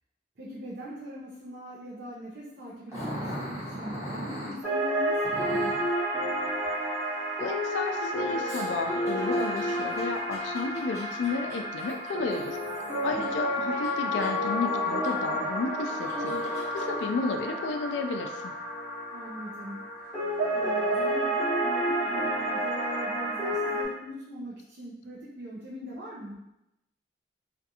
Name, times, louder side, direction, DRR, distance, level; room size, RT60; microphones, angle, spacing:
voice 1, 0.4-5.9 13.0-13.4 19.1-19.9 20.5-26.4, equal, 65° right, -6 dB, 0.5 m, -41 dB
Growling, 2.9-4.6 5.2-5.8 8.5-13.2 13.7-14.5 15.0-15.1 15.8-16.8, equal, 20° right, 1.0 m, -40 dB
sound 1, 4.6-23.8, equal, 10° left, 1.0 m, -30 dB
voice 2, 7.4-12.6 13.0-16.5 16.7-18.5, left 4 dB, 85° left, 5 dB, 0.3 m, -32 dB
2.5 x 2.4 x 2.7 m, 0.87 s
head